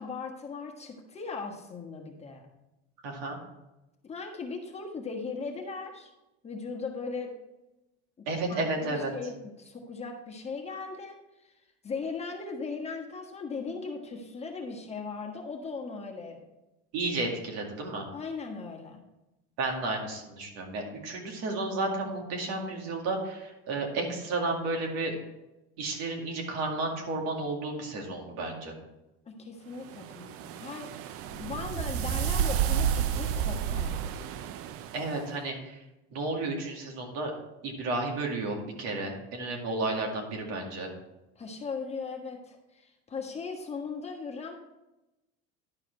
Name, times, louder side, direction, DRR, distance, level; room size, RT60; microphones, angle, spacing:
voice 1, 0.0-2.5 4.0-6.1 6.4-7.3 8.2-11.5 11.8-16.4 18.1-19.0 29.4-34.0 41.3-44.5, left 4 dB, 20° left, 1 dB, 1.3 m, -38 dB
voice 2, 3.0-3.4 8.3-9.1 16.9-18.1 19.6-25.2 25.8-28.7 34.9-35.8 36.1-37.3 37.6-40.9, right 2 dB, 75° right, 1 dB, 2.1 m, -32 dB
sound 1, 29.9-35.2, right 9 dB, 50° right, 0.5 m, -31 dB
11.0 x 4.8 x 4.5 m, 0.97 s
supercardioid pair, 125°, 30 cm